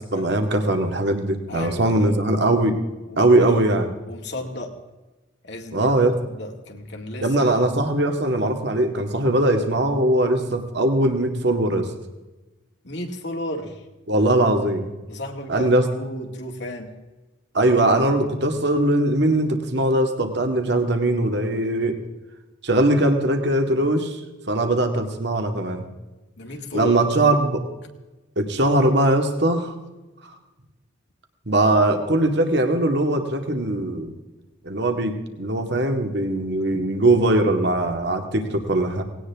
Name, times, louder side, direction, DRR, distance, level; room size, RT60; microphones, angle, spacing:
voice 1, 0.1-2.8 3.2-3.9 5.7-6.2 7.2-11.9 14.1-14.9 15.5-15.9 17.5-22.0 22.6-24.2 24.5-25.8 26.7-27.6 28.4-29.8 31.5-34.1 34.6-39.0, right 1 dB, 60° right, 5 dB, 2.0 m, -20 dB
voice 2, 1.5-2.2 3.1-3.3 4.1-4.8 5.4-7.7 12.8-13.9 15.1-16.9 26.4-27.0 28.6-28.8, left 1 dB, 60° left, 2 dB, 2.2 m, -34 dB
19.0 x 17.5 x 3.6 m, 1.1 s
head